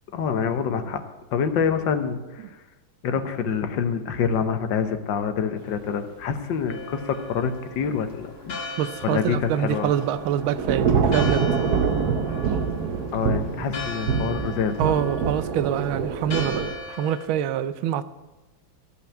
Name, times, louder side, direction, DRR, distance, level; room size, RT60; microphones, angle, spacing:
voice 1, 0.1-1.0 1.3-2.5 3.0-9.9 13.1-14.9, left 6 dB, 70° left, 8 dB, 1.6 m, -26 dB
Church bell, 6.7-17.3, left 3 dB, 55° left, 2.4 m, -38 dB
voice 2, 8.8-11.5 14.8-16.6 16.9-18.0, right 10 dB, 85° right, 14 dB, 1.4 m, -25 dB
Thunder / Rain, 9.3-16.7, right 6 dB, 60° right, 1.3 m, -25 dB
15.0 x 5.7 x 8.8 m, 1.1 s
omnidirectional pair, 2.2 m